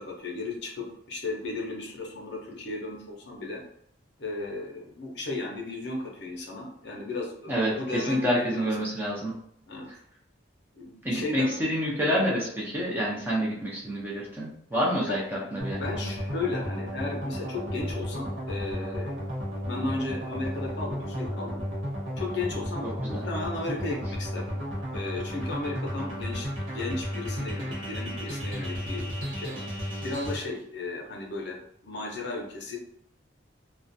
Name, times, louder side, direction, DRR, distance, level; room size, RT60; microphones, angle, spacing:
voice 1, 0.0-3.6 4.2-8.7 9.7-9.9 10.8-11.5 14.7-19.2 19.6-21.6 22.2-24.6 24.9-29.8 30.0-32.8, left 2 dB, 55° left, -1 dB, 0.5 m, -35 dB
voice 2, 7.5-9.3 11.0-15.8 22.8-23.2, equal, 10° right, -5 dB, 0.5 m, -28 dB
sound 1, 15.6-30.4, equal, 80° right, 0.8 m, -33 dB
2.3 x 2.1 x 2.6 m, 0.73 s
head